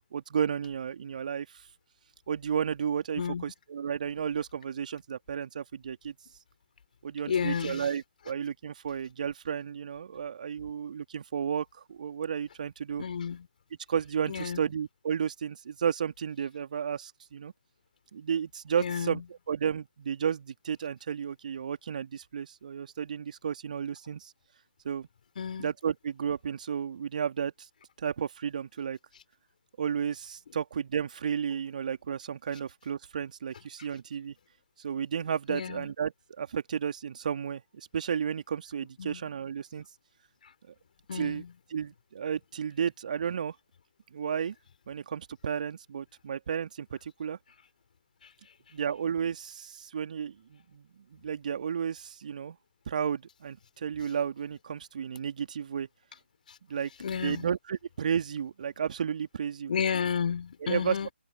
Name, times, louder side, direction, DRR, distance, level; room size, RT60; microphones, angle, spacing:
voice 1, 0.1-1.6 2.3-6.1 7.0-13.0 13.9-17.5 18.1-19.2 19.5-24.3 24.8-25.1 25.6-27.5 28.0-29.0 29.8-34.3 34.8-39.8 41.1-41.4 41.7-43.5 44.1-44.5 44.9-47.4 48.7-52.6 52.9-55.9 56.7-56.9 57.2-59.7 60.6-61.0, right 7 dB, 45° right, 2.5 m, -33 dB
voice 2, 7.3-7.9 13.0-13.5 14.3-14.6 18.8-19.2 25.4-25.7 35.5-35.9 39.0-39.2 41.1-41.5 48.2-48.3 56.5-56.6 57.0-57.5 59.7-61.1, left 7 dB, 50° left, 4.5 m, -32 dB
figure-of-eight pair, 145°, 6 cm